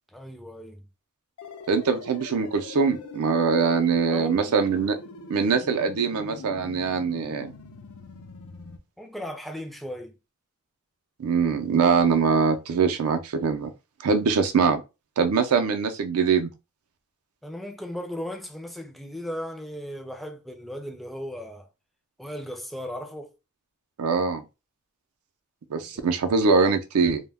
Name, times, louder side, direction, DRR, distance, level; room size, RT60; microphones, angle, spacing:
voice 1, 0.1-0.8 4.1-4.4 9.0-10.1 17.4-21.7 22.2-23.3 25.9-26.1, equal, ahead, 0.3 m, -36 dB
sound 1, 1.4-8.8, left 4 dB, 85° left, 0.5 m, -42 dB
voice 2, 1.7-5.0 5.3-7.5 11.2-13.7 14.0-14.8 15.2-16.5 24.0-24.4 25.7-27.2, right 5 dB, 85° right, 0.4 m, -23 dB
2.1 x 2.1 x 3.3 m
head